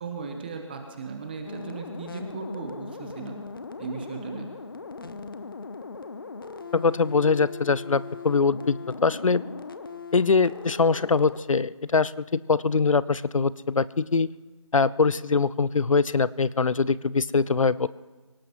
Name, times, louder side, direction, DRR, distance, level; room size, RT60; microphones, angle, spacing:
voice 1, 0.0-3.3 3.8-4.5, right 4 dB, 15° right, 3 dB, 1.0 m, -36 dB
sound 1, 1.4-11.4, left 4 dB, 40° left, 0.8 m, -39 dB
voice 2, 6.7-9.4 10.1-14.3 14.7-17.9, left 4 dB, 70° left, 19 dB, 0.6 m, -23 dB
25.0 x 18.0 x 3.1 m, 1.2 s
figure-of-eight pair, 160°, 17 cm